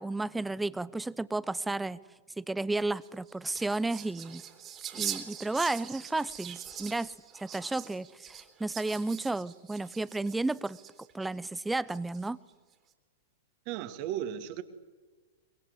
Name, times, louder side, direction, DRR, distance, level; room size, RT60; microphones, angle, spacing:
voice 1, 0.0-2.0 2.4-4.4 5.0-7.1 7.4-10.8 11.1-12.4, right 2 dB, 5° right, 0.7 m, -32 dB
sound 1, 2.9-11.3 11.9-12.5, right 9 dB, 25° right, 3.3 m, -42 dB
voice 2, 13.7-14.6, right 11 dB, 45° right, 2.3 m, -35 dB
24.5 x 23.0 x 9.7 m
figure-of-eight pair, 100°, 0 cm